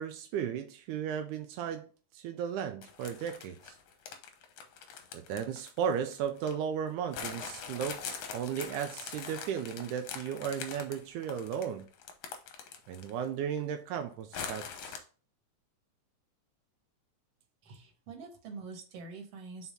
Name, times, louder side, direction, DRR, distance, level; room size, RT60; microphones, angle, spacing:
voice 1, 0.0-1.9 2.1-3.7 5.1-11.9 12.9-15.0, right 8 dB, 85° right, 2.1 m, -35 dB
sound 1, 2.8-6.6 7.1-13.3 13.6-13.7 14.3-15.0, left 7 dB, 80° left, 2.3 m, -43 dB
voice 2, 17.6-19.7, right 4 dB, 60° right, 2.4 m, -45 dB
5.6 x 4.6 x 4.2 m
omnidirectional pair, 3.5 m